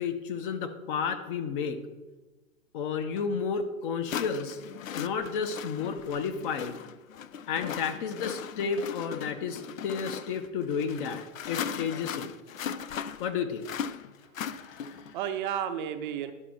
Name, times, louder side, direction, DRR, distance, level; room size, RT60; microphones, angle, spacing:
voice 1, 0.0-1.8 2.7-4.6 4.9-6.8 7.5-12.3 13.2-13.6 14.5-15.0, left 6 dB, 40° left, 8 dB, 0.9 m, -32 dB
sound 1, 3.2-3.3 4.1-15.1, left 8 dB, 80° left, 0.6 m, -38 dB
voice 2, 14.8-16.3, right 9 dB, 35° right, 8 dB, 0.6 m, -33 dB
11.0 x 4.2 x 6.1 m, 1.2 s
hypercardioid pair, 115°, 40 cm